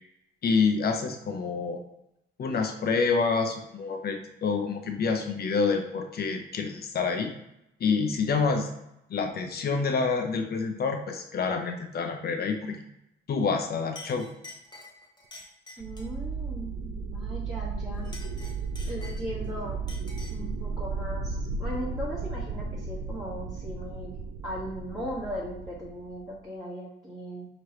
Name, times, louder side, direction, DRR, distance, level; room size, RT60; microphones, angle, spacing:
voice 1, 0.4-1.8 2.4-7.3 7.8-8.7 9.1-12.8 13.3-14.3, left 4 dB, 50° left, 4 dB, 0.8 m, -27 dB
Chink clink, 13.4-13.6 13.9-16.2 17.9-19.5 19.9-20.5, left 2 dB, 20° left, 1.0 m, -47 dB
voice 2, 15.8-18.1 18.9-19.8 20.3-24.1 24.4-27.5, equal, 15° right, -9 dB, 1.5 m, -38 dB
sound 1, 15.8-26.4, right 4 dB, 60° right, 0.4 m, -35 dB
4.5 x 3.0 x 3.1 m, 0.83 s
cardioid pair, 90°, 20 cm